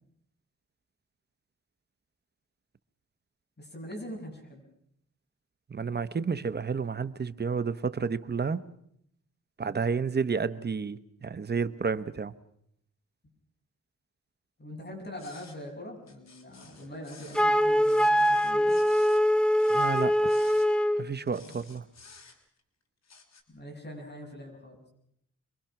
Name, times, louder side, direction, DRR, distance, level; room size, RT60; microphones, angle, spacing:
voice 1, 3.6-4.6 9.6-9.8 14.6-18.8 21.4-21.5 23.5-24.9, equal, 35° left, 7.5 m, -43 dB
voice 2, 5.7-8.7 9.6-12.3 19.7-20.3 21.0-21.8, right 5 dB, 35° right, 1.0 m, -31 dB
sound 1, 15.2-15.6 16.1-17.5 17.8-19.2 19.6-20.7 21.3-22.6 23.0-23.4, left 4 dB, 60° left, 3.5 m, -53 dB
Wind instrument woodwind instrument, 17.3-21.1, equal, 5° left, 0.8 m, -23 dB
26.0 x 22.5 x 5.9 m
cardioid pair, 100°, 30 cm